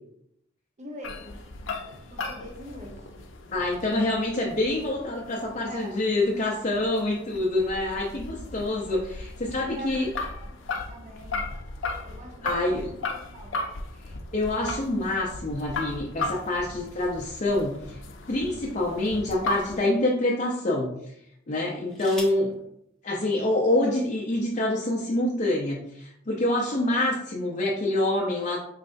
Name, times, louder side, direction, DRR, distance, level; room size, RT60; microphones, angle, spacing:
voice 1, 0.8-1.5 2.1-3.1 5.6-5.9 9.4-10.6 10.9-11.5 12.0-13.6, equal, 40° right, 0 dB, 0.8 m, -43 dB
sound 1, 1.0-19.8, left 2 dB, 90° left, 0.6 m, -37 dB
voice 2, 3.5-10.1 12.4-12.9 14.0-18.0 18.3-21.0 21.5-22.5 23.0-28.6, left 1 dB, 40° left, -2 dB, 0.6 m, -26 dB
sound 2, 21.5-22.5 23.7-23.8 24.1-24.5, left 1 dB, 5° left, 0.9 m, -44 dB
4.8 x 3.2 x 2.6 m, 0.75 s
head